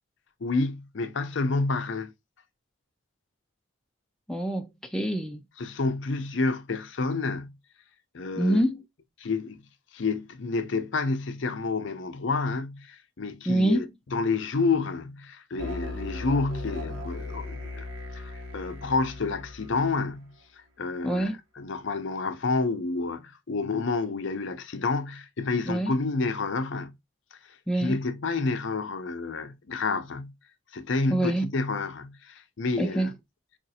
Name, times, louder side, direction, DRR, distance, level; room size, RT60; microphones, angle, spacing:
voice 1, 0.4-2.1 5.6-7.5 8.1-8.6 9.2-9.6 9.9-17.9 18.1-20.3 20.8-26.9 27.3-30.3 30.7-33.1, left 3 dB, 60° left, 0.6 m, -29 dB
voice 2, 4.3-5.4 8.4-8.8 13.5-13.8 21.0-21.4 25.7-25.9 27.7-28.0 31.1-31.5 32.8-33.1, right 1 dB, 5° left, 0.3 m, -26 dB
sound 1, 15.6-20.1, left 2 dB, 75° right, 1.1 m, -37 dB
5.1 x 2.4 x 2.6 m
head